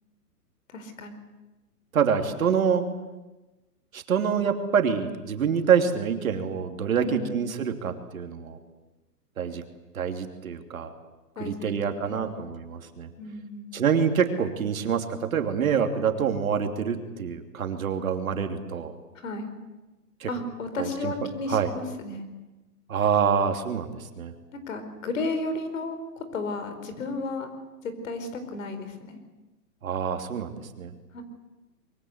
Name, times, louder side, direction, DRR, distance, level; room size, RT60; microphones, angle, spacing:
voice 1, 0.7-1.2 7.0-7.4 11.4-12.4 13.2-13.7 19.1-19.5 20.3-22.3 24.5-27.5 27.8-29.2 31.1-31.2, left 2 dB, 50° left, 9 dB, 4.6 m, -33 dB
voice 2, 1.9-2.8 3.9-8.6 9.4-9.6 9.9-10.9 11.4-13.1 13.7-18.9 20.2-20.3 20.8-21.1 21.5-21.7 22.9-24.3 29.8-30.9, right 7 dB, 55° right, 6 dB, 3.0 m, -26 dB
24.5 x 23.5 x 8.1 m, 1.1 s
hypercardioid pair, 170°, 49 cm